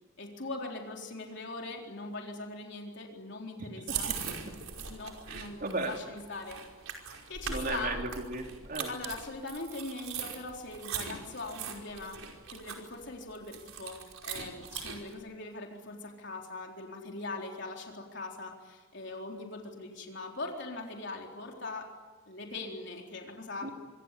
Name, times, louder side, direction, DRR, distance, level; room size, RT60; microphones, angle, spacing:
voice 1, 0.2-4.1 4.8-6.6 7.3-8.0 8.9-12.2 12.5-21.9 22.3-23.7, left 3 dB, 55° left, 1 dB, 3.9 m, -41 dB
voice 2, 3.6-4.2 5.3-5.9 7.5-8.9 23.6-23.7, right 2 dB, 45° right, 3 dB, 3.6 m, -36 dB
sound 1, 3.9-15.1, right 6 dB, 90° right, 5.1 m, -40 dB
25.5 x 25.5 x 8.4 m, 1.3 s
head